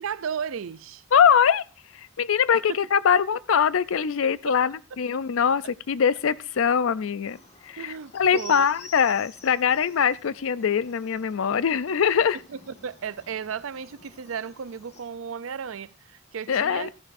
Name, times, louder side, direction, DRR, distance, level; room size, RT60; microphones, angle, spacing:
voice 1, 0.0-1.0 2.7-2.8 7.8-8.7 12.5-16.9, right 7 dB, 75° right, 0.5 m, -34 dB
voice 2, 1.1-1.6 1.9-7.4 7.6-12.4 16.5-16.9, left 7 dB, 75° left, 0.5 m, -22 dB
sound 1, 7.3-15.0, left 3 dB, 35° left, 1.7 m, -50 dB
14.5 x 10.0 x 2.6 m
head